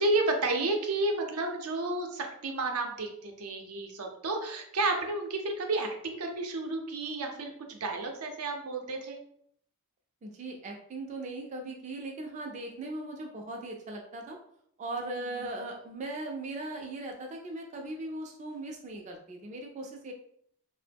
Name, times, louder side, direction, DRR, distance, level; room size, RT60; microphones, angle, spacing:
voice 1, 0.0-9.2 15.2-15.4, right 2 dB, 80° right, 3 dB, 0.6 m, -31 dB
voice 2, 10.2-14.4 14.8-20.1, right 2 dB, 35° right, 1 dB, 0.3 m, -39 dB
2.8 x 2.0 x 3.3 m, 0.69 s
head